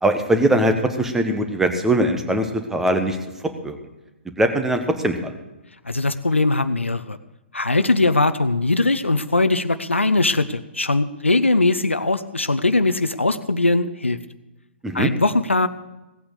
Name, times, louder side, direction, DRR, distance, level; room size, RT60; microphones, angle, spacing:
voice 1, 0.0-3.2 3.6-3.8 4.4-5.3 14.8-15.1, right 1 dB, 5° right, 6 dB, 1.2 m, -21 dB
voice 2, 5.8-7.2 7.5-14.2 14.9-15.7, left 2 dB, 80° left, 11 dB, 0.6 m, -20 dB
17.0 x 8.7 x 6.5 m, 1.0 s
figure-of-eight pair, 120°, 6 cm